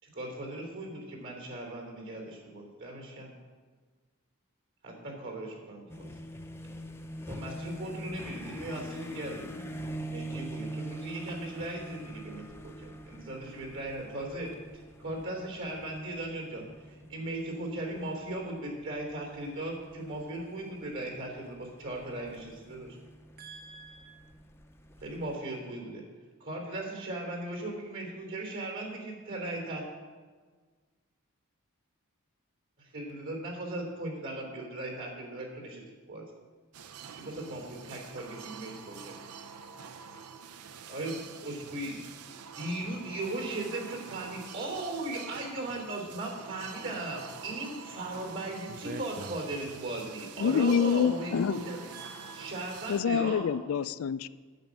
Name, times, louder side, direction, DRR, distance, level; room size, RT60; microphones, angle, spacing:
voice 1, 0.0-3.3 4.8-6.1 7.2-9.7 10.1-14.5 15.0-23.0 25.0-26.0 26.4-29.9 32.8-36.2 37.1-39.2 40.9-42.0 42.5-51.9 52.3-53.5, right 1 dB, 60° right, 1 dB, 3.4 m, -38 dB
sound 1, 5.9-25.4, right 1 dB, 10° left, 0.5 m, -44 dB
voice 2, 23.4-24.1 48.7-49.7 51.9-53.2, right 4 dB, 45° right, 8 dB, 0.5 m, -46 dB
sound 2, 36.7-53.0, right 6 dB, 85° right, 0.6 m, -47 dB
voice 3, 50.4-51.7 52.9-54.3, left 6 dB, 65° left, 15 dB, 0.4 m, -27 dB
9.2 x 6.5 x 8.5 m, 1.5 s
head